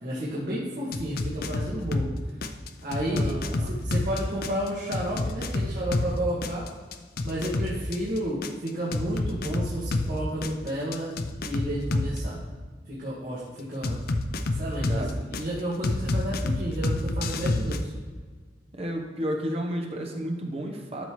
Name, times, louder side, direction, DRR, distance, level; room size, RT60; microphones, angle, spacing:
voice 1, 0.0-2.1 2.8-6.7 7.2-11.1 11.4-12.4 12.9-14.0 14.5-17.9, equal, 50° right, -8 dB, 1.9 m, -31 dB
sound 1, 0.9-2.1 2.4-6.1 6.4-10.1 10.4-12.2 13.8-15.4 15.8-17.8, left 2 dB, 60° left, 0.6 m, -28 dB
voice 2, 3.1-3.8 14.9-15.1 18.7-21.0, equal, 35° right, 1 dB, 0.9 m, -32 dB
12.5 x 5.5 x 3.1 m, 1.5 s
head